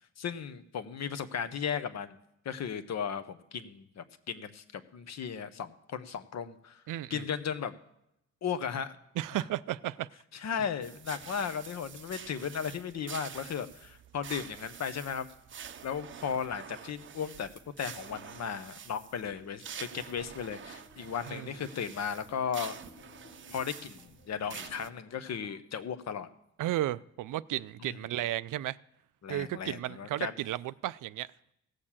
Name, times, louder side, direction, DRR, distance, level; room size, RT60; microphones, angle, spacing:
voice 1, 0.2-2.2 2.4-6.8 7.1-7.7 8.4-8.9 10.3-15.3 15.8-17.5 17.8-22.8 23.5-26.3 27.8-27.9 29.2-30.3, left 7 dB, 60° left, 0.9 m, -36 dB
voice 2, 6.9-7.2 9.2-10.1 21.3-21.5 26.6-28.8 29.3-31.3, right 14 dB, 85° right, 0.5 m, -34 dB
sound 1, 10.8-24.9, right 7 dB, 40° right, 0.6 m, -47 dB
sound 2, 20.6-25.6, left 5 dB, 85° left, 1.1 m, -57 dB
16.5 x 6.6 x 7.4 m
wide cardioid pair, 145°, 31 cm